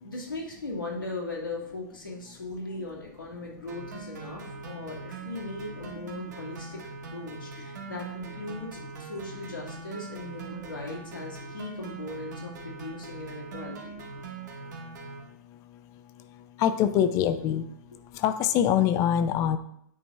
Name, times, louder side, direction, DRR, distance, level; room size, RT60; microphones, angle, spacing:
voice 1, 0.0-6.8 7.1-14.0, left 2 dB, 90° left, -2 dB, 2.2 m, -38 dB
sound 1, 3.7-15.2, right 4 dB, 60° right, 1.4 m, -42 dB
voice 2, 16.6-17.7 18.2-19.6, left 9 dB, 30° left, 11 dB, 0.5 m, -23 dB
8.9 x 4.1 x 3.4 m, 0.72 s
figure-of-eight pair, 110°, 11 cm